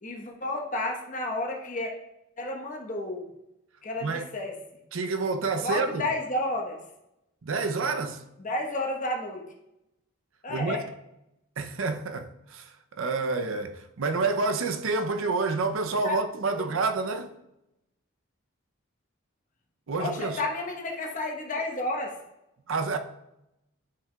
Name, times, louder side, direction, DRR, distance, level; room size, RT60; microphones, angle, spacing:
voice 1, 0.0-1.9 2.4-3.3 3.8-4.5 5.6-6.8 8.4-9.4 10.4-10.8 16.0-16.2 16.5-16.6 20.0-22.2, left 2 dB, 35° left, 1.1 m, -31 dB
voice 2, 4.9-6.1 7.4-8.2 10.5-10.8 11.6-17.3 19.9-20.4 22.7-23.0, right 4 dB, 70° right, 0.6 m, -28 dB
9.8 x 5.7 x 2.3 m
head